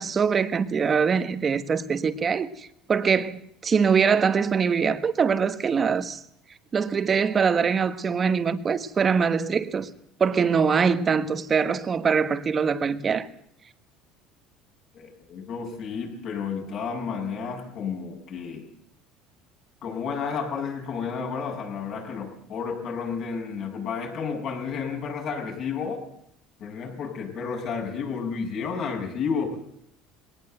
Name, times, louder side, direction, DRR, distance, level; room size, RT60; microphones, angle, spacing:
voice 1, 0.0-6.2 6.7-9.9 10.2-13.3, right 6 dB, 25° right, 1.4 m, -23 dB
voice 2, 14.9-18.7 19.8-26.0 26.6-29.6, left 5 dB, 50° left, 7.2 m, -31 dB
21.0 x 18.5 x 8.0 m
cardioid pair, 135°, 0 cm